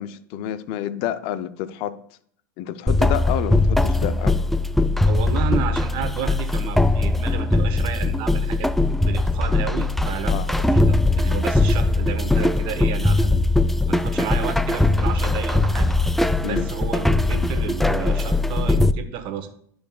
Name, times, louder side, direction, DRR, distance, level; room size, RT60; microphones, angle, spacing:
voice 1, 0.0-2.0 2.6-4.4 10.3-10.5 16.4-16.7, left 11 dB, 60° left, 0.5 m, -29 dB
sound 1, 2.9-18.9, left 2 dB, ahead, 0.3 m, -20 dB
voice 2, 5.1-8.7 9.1-10.5 10.7-13.4 13.9-16.0 16.4-19.5, right 8 dB, 55° right, 1.1 m, -31 dB
12.5 x 5.1 x 2.3 m
hypercardioid pair, 85°, 10 cm